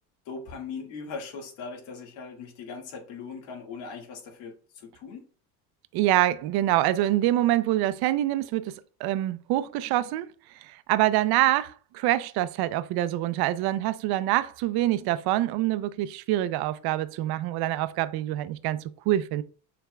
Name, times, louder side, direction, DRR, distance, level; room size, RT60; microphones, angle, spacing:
voice 1, 0.3-5.3, left 5 dB, 75° left, 1.9 m, -39 dB
voice 2, 5.9-10.3 10.6-19.4, right 14 dB, 60° right, 0.5 m, -25 dB
6.8 x 3.4 x 2.2 m
cardioid pair, 115°, 44 cm